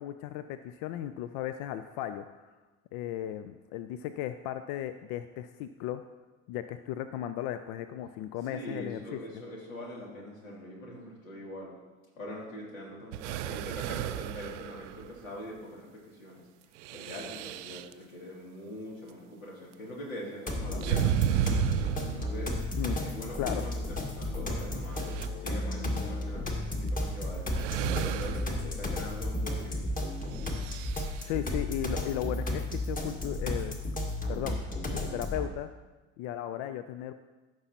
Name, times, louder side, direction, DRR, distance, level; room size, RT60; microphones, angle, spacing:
voice 1, 0.0-2.2 2.9-6.0 6.5-9.2 20.8-20.9 22.8-23.1 23.4-23.6 31.2-33.8 34.3-34.6 34.9-35.7 36.2-37.1, left 12 dB, 50° left, 11 dB, 0.5 m, -36 dB
voice 2, 8.5-11.7 12.2-16.4 16.9-21.6 22.1-22.6 23.0-27.5 27.9-29.9, equal, 80° left, -3 dB, 2.7 m, -43 dB
sound 1, 13.1-15.3 16.8-17.9 20.8-22.8 24.0-24.1 24.7-25.3 26.9-27.0 27.5-28.6 30.3-31.3, right 11 dB, 65° right, 0.5 m, -33 dB
sound 2, 20.5-35.5, left 1 dB, 20° left, 1.6 m, -33 dB
14.5 x 6.1 x 2.8 m, 1.2 s
figure-of-eight pair, 65°, 40 cm